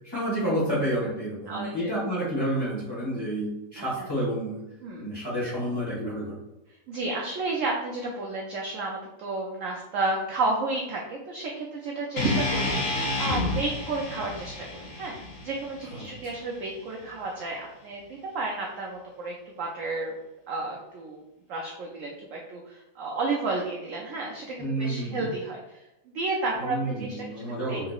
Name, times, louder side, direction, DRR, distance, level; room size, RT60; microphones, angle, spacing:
voice 1, 0.0-4.6 5.0-6.3 15.9-16.1 24.6-25.3 26.6-27.9, right 1 dB, 15° left, -8 dB, 1.2 m, -29 dB
voice 2, 1.5-1.9 3.8-4.1 4.8-5.1 6.9-20.1 20.5-21.2 21.5-27.9, right 3 dB, 75° right, -1 dB, 0.7 m, -32 dB
sound 1, 12.2-16.3, left 2 dB, 55° left, 0.9 m, -30 dB
3.6 x 2.9 x 2.3 m, 0.94 s
omnidirectional pair, 1.8 m